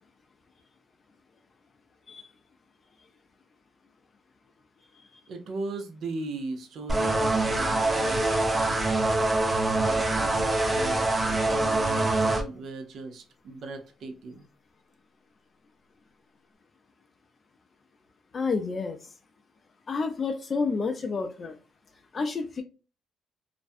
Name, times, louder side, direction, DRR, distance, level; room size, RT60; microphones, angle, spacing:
voice 1, 5.3-8.9 9.7-14.5, right 3 dB, 70° right, 0.6 m, -38 dB
sound 1, 6.9-12.4, right 2 dB, 25° right, 0.5 m, -24 dB
voice 2, 18.3-19.0 19.9-21.6 22.1-22.6, left 4 dB, 40° left, 0.4 m, -29 dB
2.4 x 2.1 x 2.5 m
cardioid pair, 90°, 0 cm